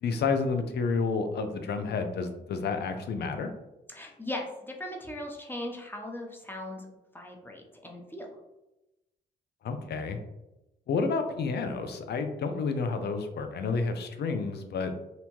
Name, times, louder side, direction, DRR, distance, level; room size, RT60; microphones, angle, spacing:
voice 1, 0.0-3.5 9.6-10.2 10.9-14.9, left 4 dB, 65° left, 7 dB, 0.4 m, -30 dB
voice 2, 3.9-4.5 4.8-6.8 7.1-8.3, left 1 dB, 10° left, 1 dB, 0.7 m, -38 dB
2.7 x 2.1 x 3.0 m, 0.95 s
supercardioid pair, 55°, 18 cm